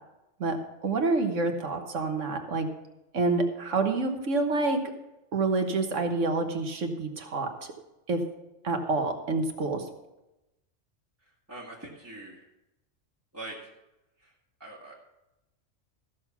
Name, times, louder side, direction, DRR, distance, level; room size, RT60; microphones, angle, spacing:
voice 1, 0.8-2.7 3.1-4.8 5.3-7.5 8.1-8.2 8.6-9.8, right 3 dB, 75° right, 4 dB, 1.5 m, -27 dB
voice 2, 11.2-12.5 13.3-13.7 14.2-14.3 14.6-15.0, right 2 dB, 10° right, -6 dB, 1.9 m, -43 dB
14.0 x 6.4 x 5.9 m, 0.95 s
omnidirectional pair, 1.3 m